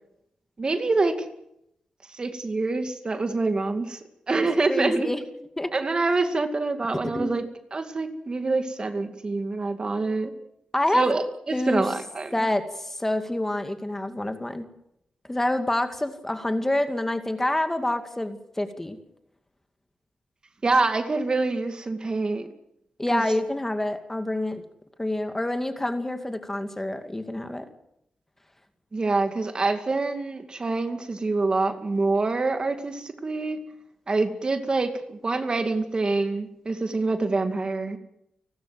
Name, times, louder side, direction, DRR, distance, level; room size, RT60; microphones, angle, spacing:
voice 1, 0.6-1.2 2.1-4.0 4.3-5.1 5.7-10.3 10.9-12.3 20.6-22.5 23.1-23.2 28.9-33.6 34.1-38.0, right 3 dB, 40° right, 7 dB, 2.3 m, -26 dB
voice 2, 4.7-5.2 5.6-5.7 7.1-7.3 10.7-11.1 11.5-11.8 12.3-14.6 15.3-19.0 23.0-24.6 25.0-27.6, left 1 dB, 15° left, 7 dB, 2.3 m, -27 dB
30.0 x 12.5 x 7.6 m, 0.78 s
cardioid pair, 70°, 2 cm